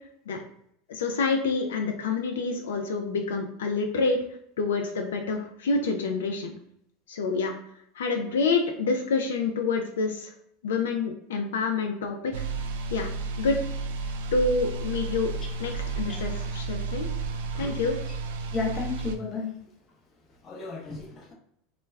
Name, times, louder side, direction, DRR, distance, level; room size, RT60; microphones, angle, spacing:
voice 1, 0.9-4.2 4.6-6.5 7.1-7.6 8.0-10.3 10.6-12.3 12.9-13.1 13.4-13.6 14.3-15.3 15.6-17.1 17.5-18.0, left 4 dB, 90° left, 4 dB, 0.3 m, -27 dB
sound 1, 12.3-19.2, right 4 dB, 80° right, 0.3 m, -32 dB
voice 2, 18.5-19.5 20.4-21.3, left 4 dB, 35° left, 1 dB, 0.7 m, -33 dB
2.1 x 2.1 x 3.3 m, 0.71 s
supercardioid pair, 110°, 0 cm